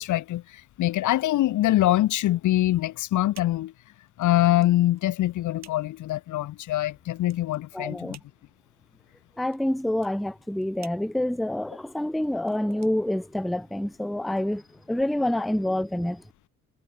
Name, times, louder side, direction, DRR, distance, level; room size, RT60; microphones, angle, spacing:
voice 1, 0.0-3.7 4.2-8.2, left 14 dB, 75° left, 1.1 m, -24 dB
sound 1, 2.5-13.8, right 9 dB, 60° right, 7.6 m, -55 dB
voice 2, 7.7-8.2 9.4-16.2, left 1 dB, ahead, 0.6 m, -27 dB
cardioid pair, 90°, 30 cm